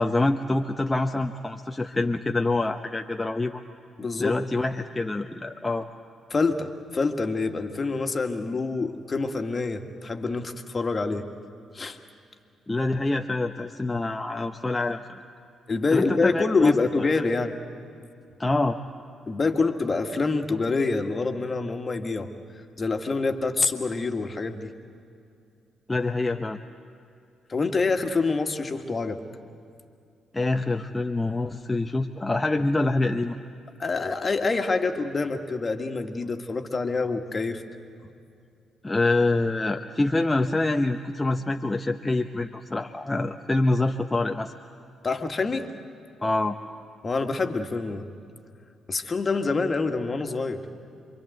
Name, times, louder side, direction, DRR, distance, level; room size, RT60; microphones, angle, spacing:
voice 1, 0.0-3.6 4.2-5.9 12.7-15.0 15.9-17.1 18.4-18.8 25.9-26.6 30.3-33.4 38.8-44.5 46.2-46.6, left 2 dB, 20° left, 4 dB, 1.0 m, -26 dB
voice 2, 4.0-4.4 6.3-11.3 11.7-12.0 15.7-17.6 19.3-22.3 22.8-24.7 27.5-29.2 33.8-37.6 45.0-45.7 47.0-48.1 48.9-50.6, left 3 dB, 40° left, 6 dB, 1.9 m, -26 dB
27.5 x 24.0 x 8.0 m, 2.5 s
hypercardioid pair, 40°, 0 cm